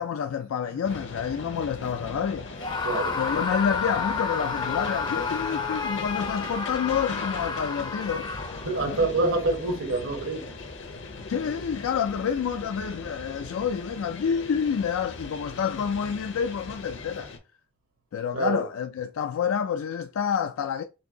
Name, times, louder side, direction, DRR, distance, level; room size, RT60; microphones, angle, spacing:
voice 1, 0.0-2.5 3.1-8.3 8.8-9.1 11.3-17.3 18.1-20.8, left 7 dB, 85° left, 0.3 m, -28 dB
sound 1, 0.8-17.4, left 3 dB, 65° left, 0.8 m, -39 dB
Screaming, 2.6-8.8, left 4 dB, 20° left, 0.5 m, -31 dB
voice 2, 2.8-3.2 8.6-10.6 18.3-18.6, right 2 dB, 85° right, 1.4 m, -26 dB
4.4 x 2.7 x 2.8 m
head